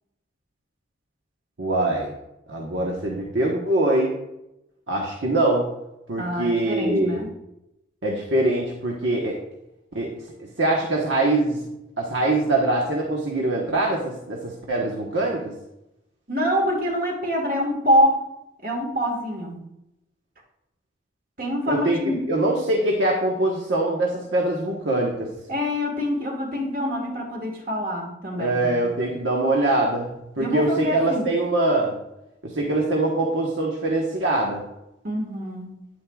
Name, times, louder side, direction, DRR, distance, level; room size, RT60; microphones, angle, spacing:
voice 1, 1.6-2.1 2.5-4.2 4.9-5.7 6.1-7.2 8.0-9.4 9.9-10.1 10.6-11.7 12.0-15.5 21.7-22.0 22.3-25.3 28.4-31.9 32.4-34.6, right 2 dB, 75° right, -2 dB, 1.2 m, -23 dB
voice 2, 6.2-7.3 16.3-18.3 18.6-19.6 21.4-22.3 25.5-28.6 30.4-31.3 35.0-35.8, equal, 50° right, 1 dB, 1.7 m, -25 dB
9.8 x 9.3 x 2.4 m, 0.87 s
head